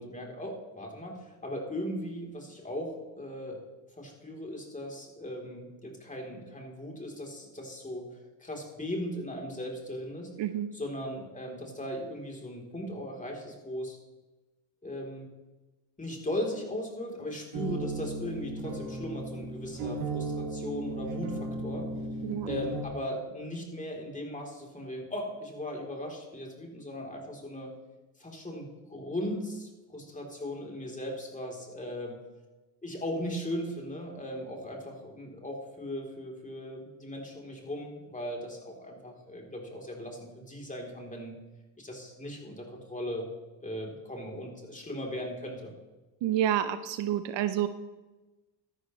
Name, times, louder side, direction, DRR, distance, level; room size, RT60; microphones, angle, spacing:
voice 1, 0.0-3.6 3.9-10.3 10.7-14.0 14.8-15.3 16.0-21.9 22.5-27.7 28.2-32.2 32.8-41.3 41.8-43.3 43.6-45.7, equal, 15° left, 0 dB, 3.5 m, -38 dB
sound 1, 17.5-22.8, right 2 dB, 80° right, 2.4 m, -35 dB
voice 2, 46.2-47.7, right 11 dB, 60° right, 12 dB, 0.8 m, -28 dB
13.0 x 11.5 x 3.2 m, 1.1 s
supercardioid pair, 90°, 50 cm